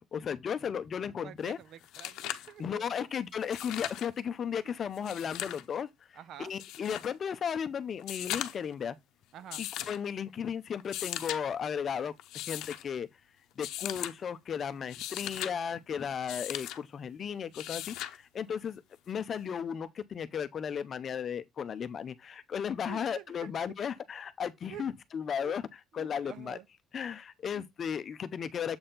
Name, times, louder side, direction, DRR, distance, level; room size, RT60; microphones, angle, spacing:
voice 1, 0.0-1.6 2.6-9.0 9.6-13.1 13.6-18.8 19.1-25.6 25.9-26.6 26.9-28.8, left 7 dB, 35° left, 0.6 m, -35 dB
voice 2, 1.2-2.9 6.2-6.5 9.3-9.6 18.3-18.6 22.9-23.5 24.7-24.8 25.4-25.5 25.9-26.7 27.5-27.6, right 10 dB, 55° right, 0.6 m, -48 dB
sound 1, 1.5-1.6 1.8-2.5 3.4-4.1 4.9-5.6 6.6-7.1 8.0-8.7 9.5-10.0 10.8-11.4 12.2-12.8 13.6-14.1 14.8-15.5 16.3-16.8 17.5-18.2 19.6-19.7, left 13 dB, 75° left, 0.8 m, -38 dB
7.7 x 4.3 x 3.8 m
cardioid pair, 175°, 0 cm